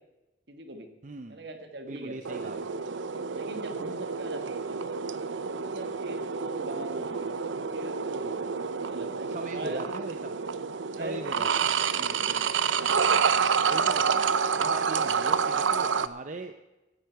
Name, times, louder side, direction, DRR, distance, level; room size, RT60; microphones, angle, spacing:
voice 1, 0.5-0.9 1.3-3.0 3.3-4.8 5.4-8.4 8.8-10.0 10.9-11.6 11.9-12.6 12.9-13.5, right 1 dB, 65° right, 6 dB, 1.7 m, -42 dB
voice 2, 1.0-1.4 1.8-2.6 9.3-10.3 10.9-11.7 13.7-16.5, right 3 dB, 40° right, 7 dB, 0.6 m, -39 dB
sound 1, 2.3-16.1, right 6 dB, 85° right, 0.6 m, -28 dB
17.0 x 10.5 x 4.6 m, 1.1 s
head